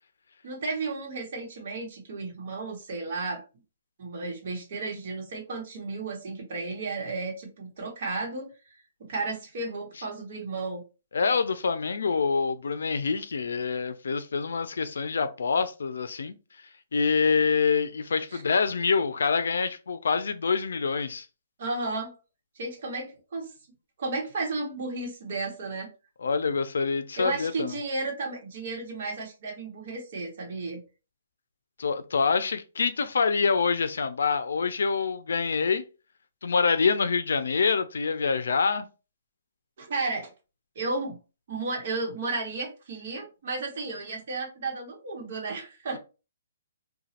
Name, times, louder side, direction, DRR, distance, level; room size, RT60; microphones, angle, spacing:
voice 1, 0.4-3.4 4.0-8.5 9.1-10.8 18.3-18.4 21.6-22.1 22.5-23.5 24.0-25.9 27.2-30.8 39.8-40.3 40.7-41.2 41.5-46.0, right 3 dB, 40° right, 1.0 m, -33 dB
voice 2, 11.1-16.3 16.9-21.3 26.2-27.8 31.8-35.8 36.4-38.9, left 5 dB, 90° left, 0.4 m, -26 dB
3.0 x 2.2 x 2.8 m
hypercardioid pair, 175°, 0 cm